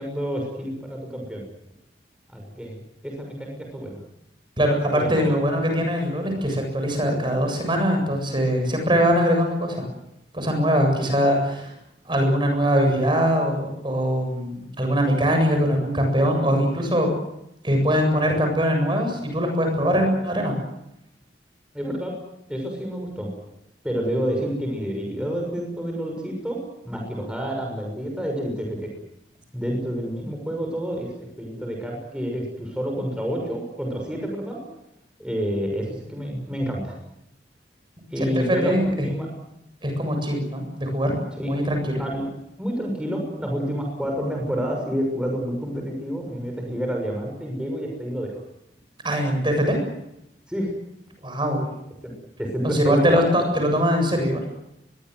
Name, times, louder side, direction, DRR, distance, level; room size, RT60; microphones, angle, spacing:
voice 1, 0.0-1.4 2.3-4.0 4.9-5.3 21.7-22.1 22.5-23.3 23.8-26.6 26.8-28.9 29.5-31.1 31.4-34.6 35.2-37.0 38.1-39.3 41.4-41.5 42.0-42.3 42.6-48.4 50.5-50.7 52.0-52.1 52.4-53.2, equal, 5° right, 1 dB, 6.6 m, -29 dB
voice 2, 4.6-9.8 10.3-11.7 12.1-17.1 17.6-20.5 38.2-39.1 39.8-41.1 41.4-42.0 49.0-49.8 51.2-51.7 52.6-54.4, equal, 25° right, 4 dB, 7.7 m, -22 dB
23.5 x 22.5 x 8.1 m, 0.84 s
head